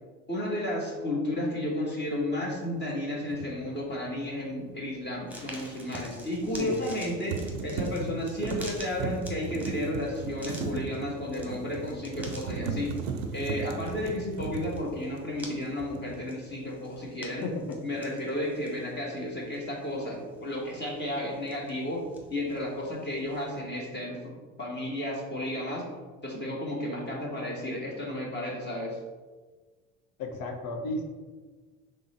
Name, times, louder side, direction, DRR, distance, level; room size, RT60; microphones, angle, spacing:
voice 1, 0.3-12.9 13.3-17.5 17.8-22.0 22.3-25.8 26.2-29.0, left 1 dB, 25° left, -3 dB, 1.2 m, -33 dB
sound 1, 3.3-3.5 6.6-7.0 7.3-15.5 15.8-16.2, right 5 dB, 85° right, 0.6 m, -36 dB
sound 2, 5.3-23.6, right 1 dB, 5° right, 1.1 m, -49 dB
voice 2, 17.4-17.8 30.2-31.0, left 2 dB, 60° left, 4 dB, 0.8 m, -33 dB
3.7 x 3.2 x 4.1 m, 1.3 s
hypercardioid pair, 70°, 39 cm